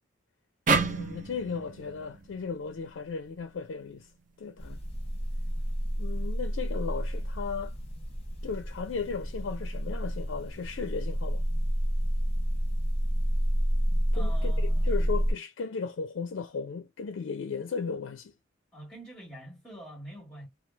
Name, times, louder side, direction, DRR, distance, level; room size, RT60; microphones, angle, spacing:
sound 1, 0.7-3.9, right 4 dB, 40° right, 0.5 m, -31 dB
voice 1, 0.8-4.1 4.4-4.8 6.0-7.7 8.4-11.5 14.1-18.3, left 5 dB, 70° left, 0.4 m, -36 dB
sound 2, 4.6-15.3, equal, 30° left, 0.8 m, -29 dB
voice 2, 14.1-15.1 18.7-20.5, right 1 dB, ahead, 1.3 m, -46 dB
3.1 x 2.3 x 2.2 m
head